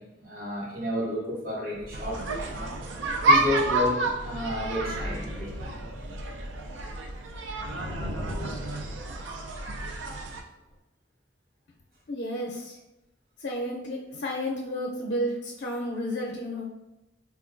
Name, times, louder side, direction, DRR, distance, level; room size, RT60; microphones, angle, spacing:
voice 1, 0.0-2.7 3.2-5.5, left 1 dB, 50° right, -4 dB, 1.0 m, -31 dB
sound 1, 1.8-3.9 4.4-7.1 7.5-9.9 10.7-10.8, equal, 10° right, 0.5 m, -40 dB
sound 2, 1.9-10.4, right 2 dB, 80° right, 0.4 m, -30 dB
voice 2, 12.1-12.8 13.4-16.6, equal, 65° left, -2 dB, 0.5 m, -32 dB
4.4 x 2.3 x 2.5 m, 0.99 s
head